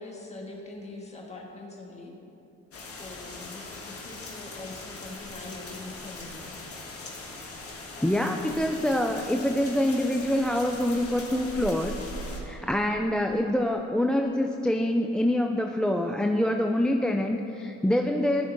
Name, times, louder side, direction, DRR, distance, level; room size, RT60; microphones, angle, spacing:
voice 1, 0.0-2.1 2.7-6.5, left 2 dB, 20° left, -1 dB, 1.5 m, -43 dB
sound 1, 2.7-12.4, left 2 dB, 50° left, 1.5 m, -40 dB
voice 2, 8.0-11.9 12.4-18.4, left 1 dB, 5° left, 4 dB, 0.3 m, -25 dB
14.5 x 6.6 x 2.6 m, 2.8 s
cardioid pair, 90°, 30 cm